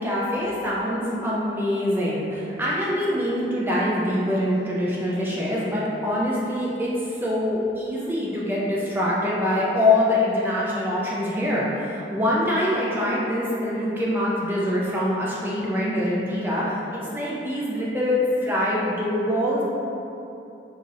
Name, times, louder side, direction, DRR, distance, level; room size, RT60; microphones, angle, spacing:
voice 1, 0.0-19.6, left 1 dB, 10° right, -6 dB, 0.3 m, -24 dB
4.7 x 2.6 x 2.5 m, 2.8 s
head